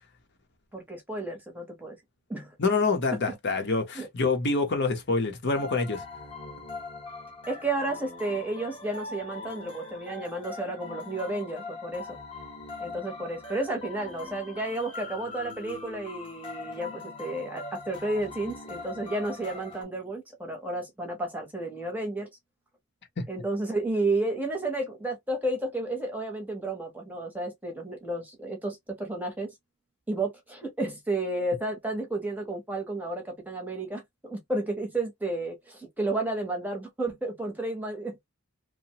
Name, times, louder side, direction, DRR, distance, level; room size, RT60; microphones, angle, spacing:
voice 1, 0.7-2.0 2.3-2.5 3.1-3.6 3.9-4.1 7.5-12.1 12.8-22.3 23.3-29.5 30.1-38.3, right 2 dB, 10° right, 0.8 m, -32 dB
voice 2, 2.6-6.0 23.2-23.3, left 3 dB, 50° left, 0.8 m, -26 dB
sound 1, 5.5-19.8, left 3 dB, 25° left, 0.9 m, -41 dB
2.8 x 2.1 x 2.8 m
head